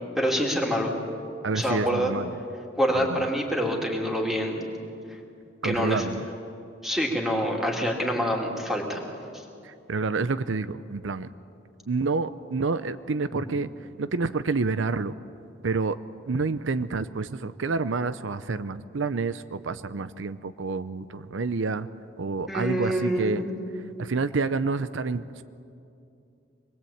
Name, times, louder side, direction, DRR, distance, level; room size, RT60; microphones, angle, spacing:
voice 1, 0.2-0.9 1.5-2.1 2.8-4.7 5.6-6.1 6.8-9.0 22.5-23.5, equal, ahead, 0 dB, 2.9 m, -26 dB
voice 2, 1.4-2.3 3.0-3.3 5.6-6.3 9.6-11.3 11.9-13.7 14.0-15.1 15.6-16.0 16.3-21.9 22.2-23.4 23.8-25.4, right 4 dB, 80° right, 13 dB, 0.6 m, -28 dB
25.5 x 20.5 x 8.7 m, 2.6 s
head